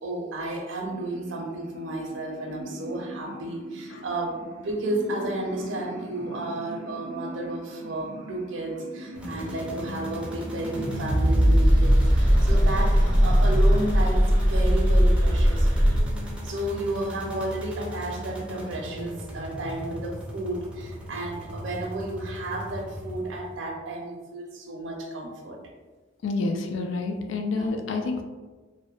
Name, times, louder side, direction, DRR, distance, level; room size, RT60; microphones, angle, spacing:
voice 1, 0.0-16.0 16.4-25.6 27.5-27.8, right 1 dB, 70° right, 1 dB, 0.5 m, -32 dB
sound 1, 0.9-16.0, equal, 25° left, 0.8 m, -24 dB
sound 2, 9.1-23.6, equal, 5° right, 0.4 m, -38 dB
voice 2, 26.2-28.2, left 3 dB, 75° left, 4 dB, 0.3 m, -28 dB
2.6 x 2.0 x 2.3 m, 1.3 s
head